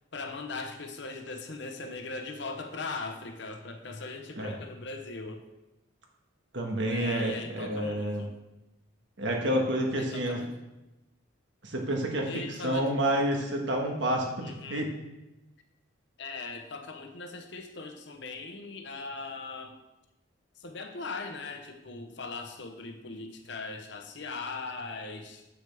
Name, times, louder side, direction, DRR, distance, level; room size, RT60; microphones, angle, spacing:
voice 1, 0.1-5.4 6.8-8.3 10.0-10.5 12.2-12.9 14.4-14.9 16.2-19.8 20.6-25.5, left 3 dB, 60° left, 5 dB, 0.8 m, -39 dB
voice 2, 6.5-8.2 9.2-10.4 11.6-14.9, right 1 dB, 65° right, 1 dB, 1.4 m, -29 dB
8.1 x 6.3 x 3.4 m, 0.97 s
head